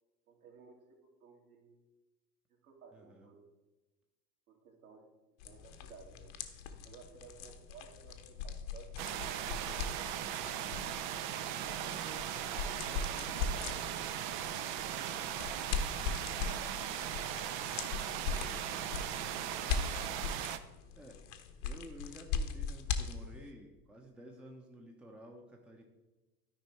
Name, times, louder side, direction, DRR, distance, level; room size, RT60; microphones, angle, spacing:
voice 1, 0.3-1.9 2.6-3.5 4.5-5.1 5.4-6.4 6.8-10.6 11.7-12.3 12.6-15.5 20.8-21.0, right 5 dB, 60° right, 0 dB, 2.3 m, -57 dB
voice 2, 2.9-3.3 21.0-21.2 21.6-25.8, equal, ahead, 1 dB, 0.8 m, -52 dB
sound 1, 5.4-23.5, left 6 dB, 45° left, 1.1 m, -40 dB
sound 2, 9.0-20.6, right 10 dB, 30° right, 0.5 m, -38 dB
13.0 x 5.2 x 4.4 m, 1.1 s
figure-of-eight pair, 85°, 49 cm